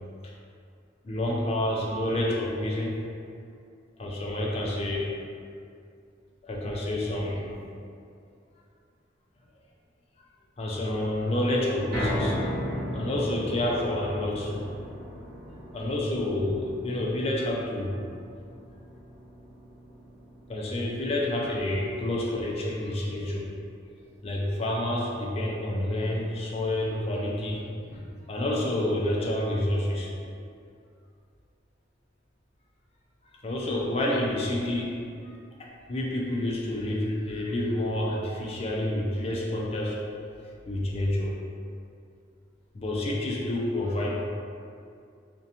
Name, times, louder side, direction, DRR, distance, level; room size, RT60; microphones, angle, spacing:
voice 1, 1.0-3.0 4.0-5.1 6.4-7.5 10.6-12.4 12.9-14.7 15.7-17.9 20.5-23.4 24.2-27.6 27.9-30.1 33.4-35.3 35.6-40.0 40.7-41.3 42.7-44.2, left 1 dB, 30° left, -3 dB, 0.3 m, -28 dB
sound 1, 11.9-24.2 24.6-24.7 25.1-25.2, left 1 dB, 55° right, 0.8 m, -37 dB
2.5 x 2.1 x 2.7 m, 2.4 s
head